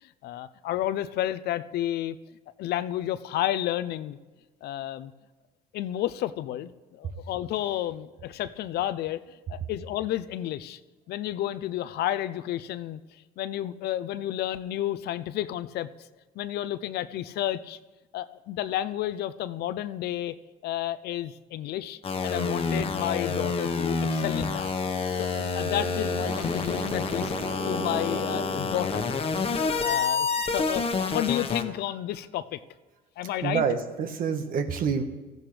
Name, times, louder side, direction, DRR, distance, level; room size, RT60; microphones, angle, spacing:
voice 1, 0.0-2.2 2.6-4.2 4.6-5.1 5.7-10.8 11.1-15.9 16.4-17.8 18.1-20.4 20.6-24.7 25.2-27.3 27.7-29.1 29.7-30.3 30.5-32.6 33.2-33.6, left 13 dB, 75° left, 15 dB, 0.6 m, -31 dB
sound 1, 22.0-31.6, left 4 dB, 35° left, 1.2 m, -28 dB
sound 2, 24.4-29.5, right 3 dB, 75° right, 2.3 m, -38 dB
voice 2, 33.4-35.0, right 6 dB, 55° right, 8 dB, 1.4 m, -27 dB
17.0 x 14.5 x 3.3 m, 1.2 s
cardioid pair, 110°, 17 cm